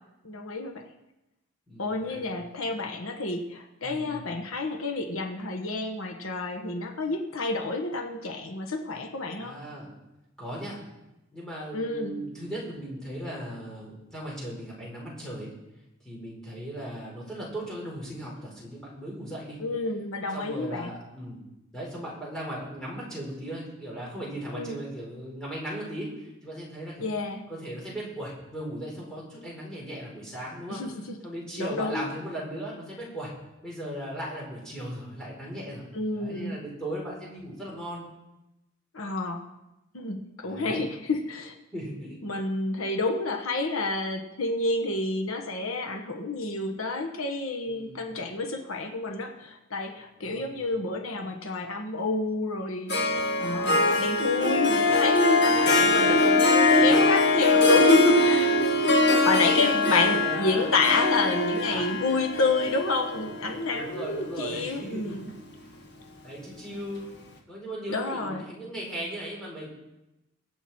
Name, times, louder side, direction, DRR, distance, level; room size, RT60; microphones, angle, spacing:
voice 1, 0.2-0.8 1.8-9.5 11.7-12.2 19.6-20.9 24.5-24.8 27.0-27.5 30.7-30.9 31.6-32.1 35.9-36.5 38.9-39.4 39.9-41.5 42.2-58.5 59.0-65.3 67.9-68.4, left 3 dB, 80° left, 4 dB, 1.3 m, -29 dB
voice 2, 1.7-2.3 3.8-4.2 9.4-9.9 10.4-10.8 11.3-15.5 16.0-19.6 20.3-21.4 21.7-27.1 27.5-30.8 31.2-33.3 33.6-38.0 40.4-40.8 41.7-42.2 47.7-48.2 50.1-50.7 55.5-56.2 56.8-57.0 58.1-58.6 59.0-60.8 61.7-61.9 63.7-65.3 66.2-67.1 67.5-69.7, right 1 dB, 5° left, -6 dB, 4.9 m, -37 dB
Harp, 52.9-64.3, left 2 dB, 55° left, 1.7 m, -22 dB
23.0 x 8.0 x 4.4 m, 0.95 s
head